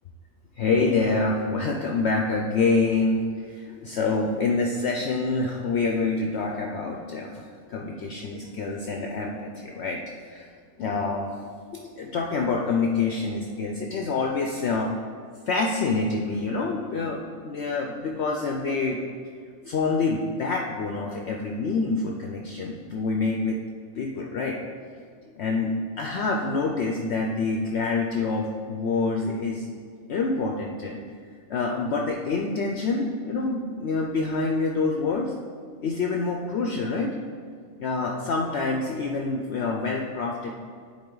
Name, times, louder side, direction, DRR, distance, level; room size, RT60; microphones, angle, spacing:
voice 1, 0.6-10.0 10.3-10.5 10.8-11.3 11.7-14.9 15.5-19.0 19.6-23.6 24.0-24.6 25.4-29.7 30.1-31.0 31.5-35.3 35.8-37.1 37.8-40.5, left 3 dB, 60° left, 1 dB, 0.7 m, -26 dB
9.5 x 4.3 x 3.8 m, 2.1 s
omnidirectional pair, 1.5 m